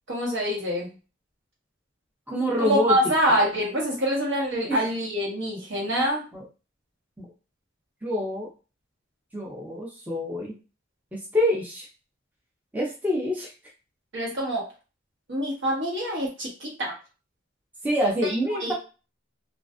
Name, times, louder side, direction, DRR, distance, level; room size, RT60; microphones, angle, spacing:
voice 1, 0.1-0.9 2.6-6.2 14.1-14.6 15.3-16.9 18.2-18.7, equal, 65° right, -3 dB, 1.1 m, -25 dB
voice 2, 2.3-2.9 4.7-4.8 6.3-6.4 7.2-7.3 8.0-8.5 9.3-10.5 11.1-11.9 12.7-13.5 17.8-18.7, left 1 dB, 10° right, -4 dB, 0.5 m, -26 dB
2.4 x 2.3 x 2.3 m, 0.33 s
head